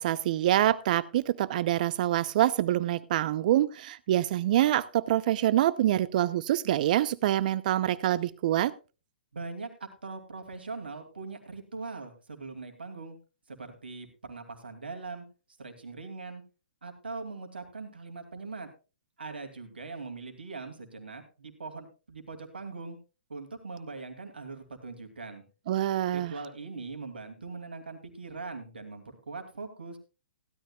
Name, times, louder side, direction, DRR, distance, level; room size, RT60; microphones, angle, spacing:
voice 1, 0.0-8.7 25.7-26.3, right 13 dB, 50° right, 18 dB, 0.8 m, -26 dB
voice 2, 9.3-13.2 13.5-15.2 15.6-16.4 16.8-18.7 19.2-23.0 23.3-25.4 26.1-30.0, right 4 dB, 85° right, 6 dB, 2.7 m, -41 dB
16.5 x 12.5 x 2.4 m, 0.31 s
hypercardioid pair, 120°, 5 cm